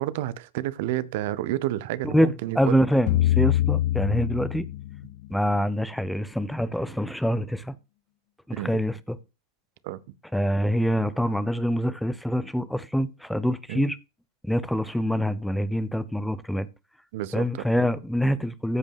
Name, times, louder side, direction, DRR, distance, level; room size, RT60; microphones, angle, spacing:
voice 1, 0.0-2.8 8.5-8.7 9.8-10.0 13.7-13.8 17.1-17.7, right 14 dB, 50° right, 0.7 m, -30 dB
voice 2, 2.0-4.6 5.3-7.7 8.5-9.2 10.3-14.0 14.4-16.7 17.3-18.8, equal, ahead, 0.7 m, -25 dB
sound 1, 3.1-5.3, left 14 dB, 45° left, 0.9 m, -24 dB
14.0 x 5.2 x 3.5 m
figure-of-eight pair, 90°, 0 cm